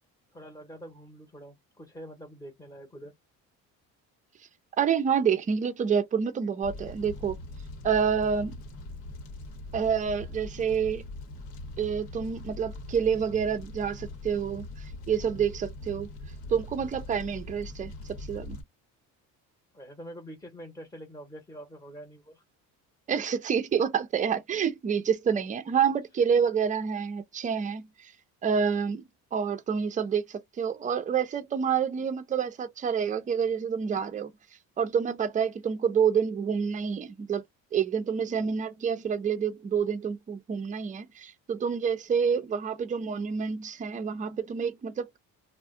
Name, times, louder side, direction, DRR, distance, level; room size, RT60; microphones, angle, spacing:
voice 1, 0.3-3.1 19.7-22.4, equal, 10° left, 0.9 m, -45 dB
voice 2, 4.8-7.4 7.8-8.5 9.7-11.0 11.8-14.7 15.1-16.1 16.5-18.6 23.1-28.1 28.4-29.0 29.3-34.3 34.8-37.4 37.7-45.2, right 7 dB, 20° right, 0.4 m, -28 dB
Fire, 6.6-18.6, left 2 dB, 85° left, 1.0 m, -42 dB
2.3 x 2.1 x 3.6 m
cardioid pair, 100°, 36 cm